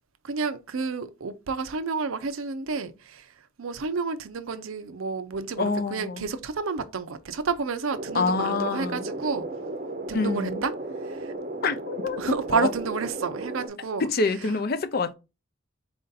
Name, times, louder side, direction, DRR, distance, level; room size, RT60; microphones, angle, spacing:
voice 1, 0.2-3.3 3.6-9.5 10.1-10.7 12.2-14.0, right 5 dB, 75° right, 0.5 m, -30 dB
voice 2, 5.6-6.3 8.1-9.1 10.1-10.6 11.6-12.2 12.5-12.7 14.0-15.1, left 4 dB, 45° left, 0.5 m, -26 dB
sound 1, 7.9-13.7, right 2 dB, 40° right, 0.7 m, -34 dB
4.2 x 2.6 x 3.9 m
head